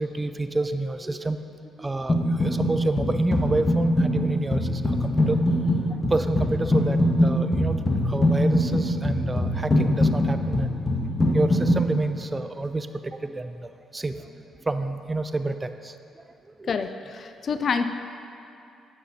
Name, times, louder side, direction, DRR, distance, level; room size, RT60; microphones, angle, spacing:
voice 1, 0.0-1.4 1.8-5.4 6.1-7.8 8.1-10.7 11.3-15.9 16.6-16.7, right 2 dB, 25° right, 9 dB, 0.4 m, -28 dB
sound 1, 2.1-2.7 3.0-11.8, left 1 dB, 25° left, 1.4 m, -22 dB
voice 2, 16.7-17.9, left 5 dB, 50° left, 9 dB, 0.4 m, -27 dB
9.9 x 7.1 x 2.7 m, 2.6 s
figure-of-eight pair, 40°, 0 cm